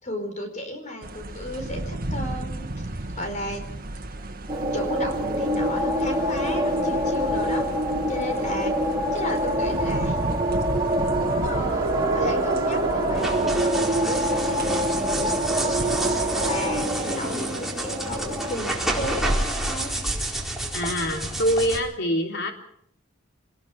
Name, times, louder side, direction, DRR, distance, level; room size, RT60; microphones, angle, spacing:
voice 1, 0.0-2.7 3.0-3.6 3.9-4.0 4.7-7.6 8.1-8.7 9.1-10.2 11.2-13.7 14.0-19.9, left 1 dB, 40° left, 6 dB, 4.7 m, -34 dB
sound 1, 1.0-16.9, right 1 dB, 45° right, 2.0 m, -34 dB
sound 2, 4.5-18.6, right 1 dB, 20° right, 4.2 m, -25 dB
sound 3, 13.1-21.8, right 1 dB, ahead, 4.3 m, -29 dB
voice 2, 20.7-22.5, equal, 60° left, 2 dB, 3.8 m, -24 dB
25.5 x 20.5 x 6.0 m, 0.69 s
head